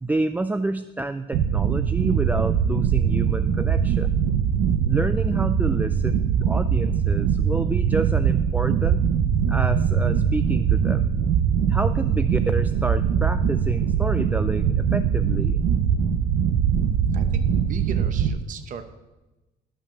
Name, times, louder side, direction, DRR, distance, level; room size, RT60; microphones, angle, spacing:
voice 1, 0.0-4.3 4.8-9.1 9.5-11.2 11.7-15.7, right 2 dB, 10° right, 11 dB, 0.3 m, -29 dB
sound 1, 1.3-18.3, right 7 dB, 80° right, 0.8 m, -22 dB
voice 2, 17.1-18.8, right 7 dB, 50° right, 9 dB, 0.9 m, -36 dB
12.5 x 5.7 x 6.9 m, 1.1 s
cardioid pair, 110°, 17 cm